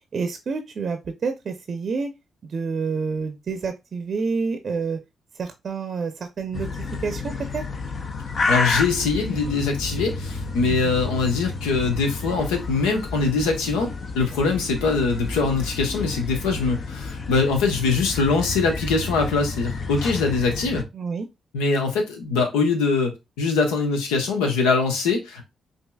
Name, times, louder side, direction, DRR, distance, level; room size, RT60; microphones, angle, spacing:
voice 1, 0.1-2.1 2.4-5.0 5.4-7.6 10.7-11.0 20.9-21.3, right 5 dB, 55° right, 0.6 m, -28 dB
sound 1, 6.5-20.8, left 3 dB, 50° left, 0.7 m, -30 dB
voice 2, 8.5-20.8 21.5-25.4, left 4 dB, 80° left, 0.9 m, -23 dB
5.4 x 2.8 x 2.3 m
hypercardioid pair, 45°, 0 cm